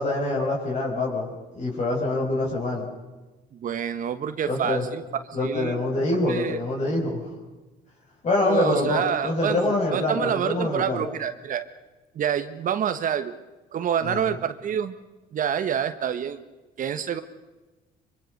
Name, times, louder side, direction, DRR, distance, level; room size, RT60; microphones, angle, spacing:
voice 1, 0.0-2.9 4.5-4.8 5.3-7.3 8.2-11.0 14.0-14.3, left 2 dB, 45° left, -2 dB, 5.6 m, -25 dB
voice 2, 3.6-5.0 5.4-5.8 6.3-6.6 8.4-11.7 12.1-13.3 13.7-14.9 15.3-16.4 16.8-17.2, right 8 dB, 50° right, 9 dB, 1.3 m, -27 dB
24.5 x 24.0 x 6.7 m, 1.2 s
cardioid pair, 110°, 17 cm